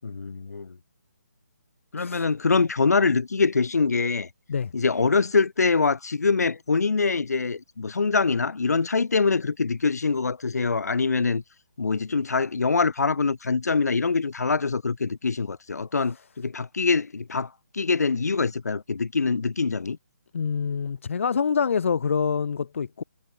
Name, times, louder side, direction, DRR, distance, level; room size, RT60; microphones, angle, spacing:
voice 1, 0.0-0.7 1.9-4.3 4.7-11.4 11.8-20.0, left 4 dB, 75° left, 7.3 m, -24 dB
voice 2, 20.3-23.0, left 6 dB, 50° left, 2.9 m, -26 dB
hypercardioid pair, 170°, 9 cm